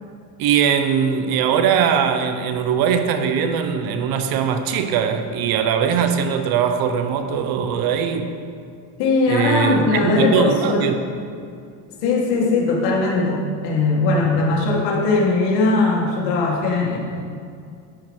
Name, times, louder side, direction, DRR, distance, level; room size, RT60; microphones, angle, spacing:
voice 1, 0.4-8.3 9.3-11.0, right 7 dB, 55° right, 7 dB, 0.9 m, -20 dB
voice 2, 9.0-10.9 12.0-17.0, left 3 dB, 75° left, -2 dB, 2.0 m, -19 dB
12.0 x 4.7 x 4.6 m, 2.2 s
cardioid pair, 140°, 42 cm